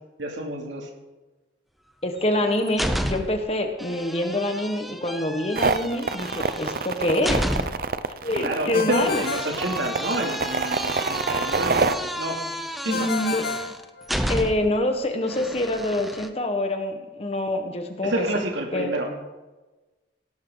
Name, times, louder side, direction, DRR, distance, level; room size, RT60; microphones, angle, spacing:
voice 1, 0.2-0.9 8.3-12.4 12.8-13.1 18.0-19.1, right 1 dB, 75° right, 1 dB, 2.9 m, -28 dB
voice 2, 2.0-7.5 8.2-9.2 12.9-13.5 14.3-18.2 18.7-18.9, left 1 dB, 35° left, 5 dB, 1.5 m, -26 dB
sound 1, 2.2-3.5 3.8-7.9 8.9-14.8 15.3-16.3, equal, ahead, 0.7 m, -31 dB
sound 2, 5.6-11.9, right 4 dB, 50° right, 0.6 m, -26 dB
Ringtone, 8.7-10.4 12.9-14.6, left 5 dB, 55° left, 0.8 m, -32 dB
17.5 x 13.5 x 4.0 m, 1.2 s
head